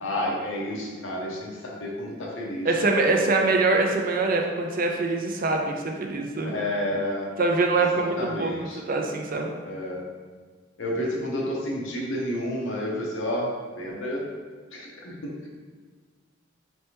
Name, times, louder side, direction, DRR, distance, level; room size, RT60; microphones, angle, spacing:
voice 1, 0.0-3.3 6.4-7.3 8.0-8.8 9.6-10.1 10.8-14.2 14.7-15.5, left 1 dB, 80° left, -2 dB, 0.9 m, -30 dB
voice 2, 2.6-6.5 7.4-9.5, right 3 dB, 45° right, 2 dB, 0.4 m, -24 dB
4.2 x 3.3 x 2.9 m, 1.5 s
head